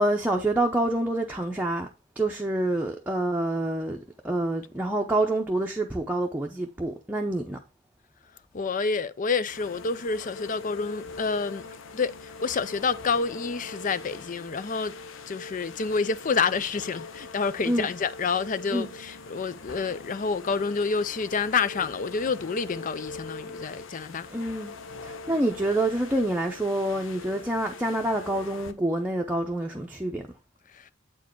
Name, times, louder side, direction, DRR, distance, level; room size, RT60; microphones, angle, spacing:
voice 1, 0.0-1.9 2.2-7.6 17.6-17.9 18.7-18.9 24.3-24.7 25.0-30.3, right 1 dB, 10° right, 0.7 m, -27 dB
voice 2, 8.5-11.7 11.9-14.9 15.3-24.3 30.7-30.9, left 5 dB, 40° left, 0.5 m, -28 dB
sound 1, 9.5-28.7, left 3 dB, 85° left, 0.7 m, -42 dB
8.3 x 4.6 x 4.6 m
head